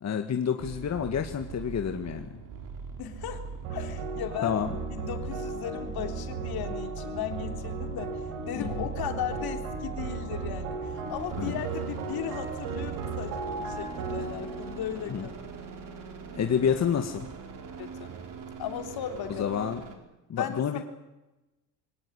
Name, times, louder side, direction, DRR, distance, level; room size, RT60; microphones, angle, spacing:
voice 1, 0.0-2.4 4.4-4.7 8.5-8.9 11.4-11.6 15.1-15.3 16.3-17.3 19.4-19.8 20.3-20.8, left 7 dB, 40° left, 5 dB, 2.0 m, -29 dB
sound 1, 0.6-20.0, right 5 dB, 50° right, 4.6 m, -41 dB
voice 2, 3.0-4.6 4.9-15.5 17.8-18.1 18.6-19.5 20.3-20.8, left 10 dB, 65° left, 6 dB, 3.5 m, -36 dB
sound 2, 3.6-16.1, right 4 dB, 90° right, 4.7 m, -36 dB
23.0 x 18.0 x 9.9 m, 1.0 s
supercardioid pair, 85°, 40 cm